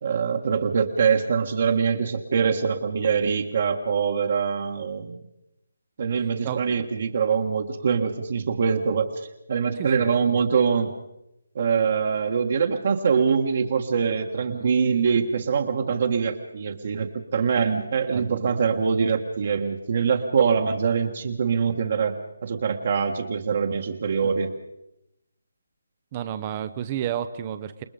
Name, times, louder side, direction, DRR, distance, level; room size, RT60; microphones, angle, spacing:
voice 1, 0.0-5.2 6.0-9.1 9.5-10.9 11.6-24.5, right 6 dB, 45° right, 2 dB, 1.7 m, -24 dB
voice 2, 6.4-6.8 9.8-10.1 14.5-14.7 18.1-18.3 24.2-24.3 26.1-27.8, right 10 dB, 25° right, 10 dB, 0.8 m, -31 dB
28.0 x 20.0 x 5.2 m, 0.86 s
hypercardioid pair, 165°, 0 cm